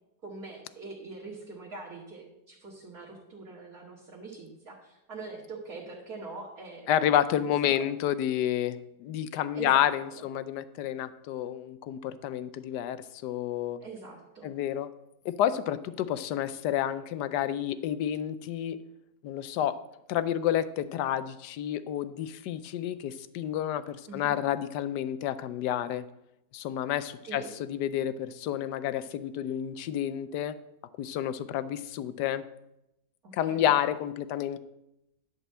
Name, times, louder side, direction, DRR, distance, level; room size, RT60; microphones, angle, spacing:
voice 1, 0.2-6.9 9.5-10.2 13.8-14.5 24.1-24.4 27.2-27.5 33.2-33.7, right 3 dB, 55° right, -6 dB, 2.1 m, -43 dB
voice 2, 6.9-13.8 14.4-14.9 15.2-18.8 19.2-19.8 20.1-26.0 26.5-27.4 27.7-30.6 31.0-32.4 33.3-34.6, left 11 dB, 75° left, 14 dB, 1.1 m, -30 dB
11.0 x 4.5 x 7.5 m, 0.87 s
omnidirectional pair, 1.9 m